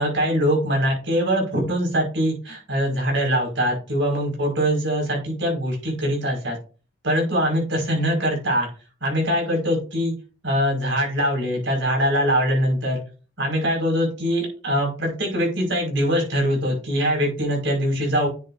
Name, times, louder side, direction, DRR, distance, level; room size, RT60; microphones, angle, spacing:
voice 1, 0.0-6.6 7.0-8.7 9.0-10.1 10.4-13.0 13.4-18.3, equal, 65° right, 0 dB, 5.3 m, -22 dB
10.0 x 7.4 x 2.6 m, 0.36 s
head